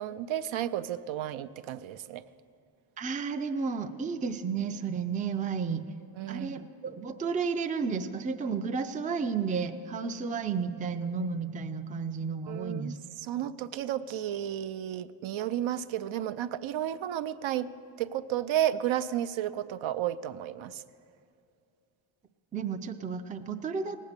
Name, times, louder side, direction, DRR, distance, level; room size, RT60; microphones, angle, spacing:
voice 1, 0.0-2.2 6.1-6.6 12.5-17.7 18.0-20.8, right 11 dB, 70° right, 12 dB, 0.6 m, -32 dB
voice 2, 3.0-5.9 6.3-13.0 22.5-24.0, right 5 dB, 15° right, 7 dB, 0.4 m, -32 dB
18.0 x 8.4 x 6.7 m, 2.4 s
cardioid pair, 135°, 50 cm